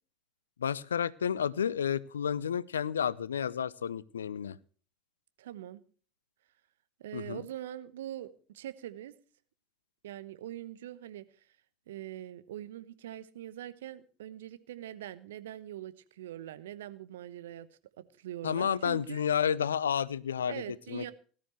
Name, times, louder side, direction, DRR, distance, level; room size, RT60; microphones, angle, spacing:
voice 1, 0.6-4.6 7.1-7.4 18.4-20.6 20.9-21.0, left 8 dB, 80° left, 21 dB, 0.6 m, -31 dB
voice 2, 5.4-5.8 7.0-9.1 10.0-11.2 11.9-17.7 18.0-19.2 20.5-21.1, right 12 dB, 75° right, 14 dB, 1.0 m, -43 dB
18.5 x 12.5 x 3.1 m, 0.42 s
figure-of-eight pair, 70°, 0 cm